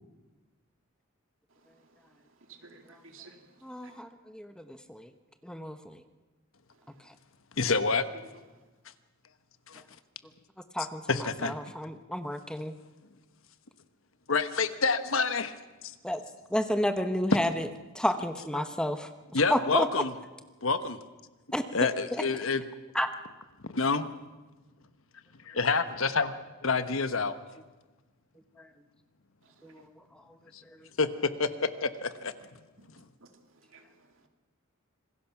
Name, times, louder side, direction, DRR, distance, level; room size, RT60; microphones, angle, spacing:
voice 1, 2.5-3.4 3.8-3.9 29.6-29.8 33.2-33.3 33.7-34.1, right 4 dB, 65° right, 5 dB, 2.4 m, -53 dB
voice 2, 3.6-5.1 5.4-6.0 6.9-7.0 10.7-12.7 16.0-16.2 16.5-17.7 17.9-20.0 21.5-21.6 22.1-22.2 22.9-23.1 28.6-28.7 29.6-29.9 30.6-30.9, left 1 dB, 5° left, 8 dB, 0.9 m, -31 dB
voice 3, 7.6-8.0 9.7-9.8 11.1-11.6 14.3-15.6 15.8-15.9 18.5-18.6 19.3-20.1 20.6-21.0 21.7-22.6 23.6-24.1 25.4-27.3 30.5-30.6 31.0-32.3, left 4 dB, 70° left, 11 dB, 1.2 m, -28 dB
26.5 x 20.5 x 6.0 m, 1.2 s
head